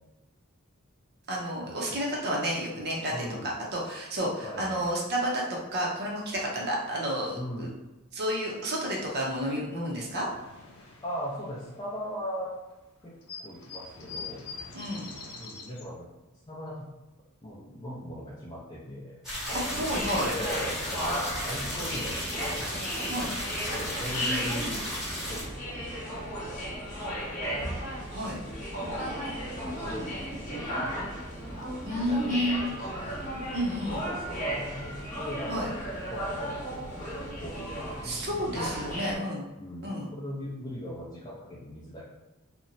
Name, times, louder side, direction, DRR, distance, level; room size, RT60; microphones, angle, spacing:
voice 1, 1.3-5.4 5.7-7.7 8.1-10.3 14.7-15.1 19.5-20.4 23.1-23.3 28.1-28.4 31.9-32.7 33.5-34.0 35.5-35.7 38.0-39.5 39.8-40.1, equal, 50° right, -3 dB, 0.6 m, -31 dB
voice 2, 3.1-3.6 4.4-4.9 7.3-7.7 11.0-12.5 13.0-13.1 13.4-14.5 15.3-16.1 16.5-16.9 17.4-19.2 20.3-22.8 23.7-24.8 25.2-26.7 27.2-27.8 28.8-31.0 31.8-33.1 34.0-35.7 36.1-38.0 38.6-39.0 39.5-42.0, equal, 20° left, -8 dB, 0.4 m, -40 dB
sound 1, 9.5-9.6 9.8-12.3 12.7-12.8 13.0-15.8, left 4 dB, 90° left, 0.5 m, -44 dB
sound 2, 19.2-25.4, equal, ahead, 1.1 m, -35 dB
sound 3, 19.5-39.1, equal, 35° left, 0.8 m, -35 dB
2.8 x 2.1 x 2.6 m, 1.0 s
head